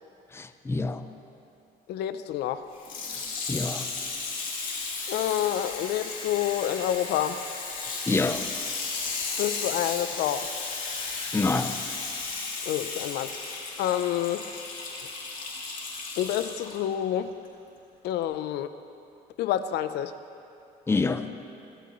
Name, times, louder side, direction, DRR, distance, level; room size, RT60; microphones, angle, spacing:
voice 1, 0.3-1.0 3.5-3.9 8.1-8.5 11.3-11.8 20.9-21.3, left 3 dB, 15° left, 9 dB, 0.6 m, -26 dB
voice 2, 1.9-2.7 5.1-7.4 9.4-10.5 12.7-14.5 16.2-17.3 18.0-18.7 19.4-20.1, left 11 dB, 80° left, 11 dB, 0.6 m, -28 dB
Water tap faucet / Sink (filling or washing), 2.8-16.8 17.4-17.5, left 4 dB, 50° left, 2.8 m, -34 dB
26.5 x 12.5 x 3.1 m, 2.6 s
cardioid pair, 110°, 17 cm